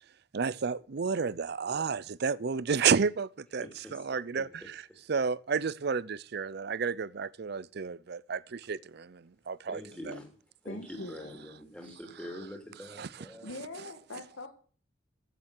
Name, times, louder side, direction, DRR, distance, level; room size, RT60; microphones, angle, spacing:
voice 1, 0.3-3.7 3.9-4.8 5.1-9.8 10.1-10.2 13.0-13.1, right 6 dB, 55° right, 0.5 m, -31 dB
voice 2, 3.6-4.0 4.3-5.0 9.7-10.3 10.6-13.5, left 1 dB, 5° left, 3.1 m, -45 dB
voice 3, 10.6-11.4 11.7-11.8 13.4-14.5, left 2 dB, 85° left, 1.9 m, -42 dB
15.0 x 7.5 x 6.4 m
head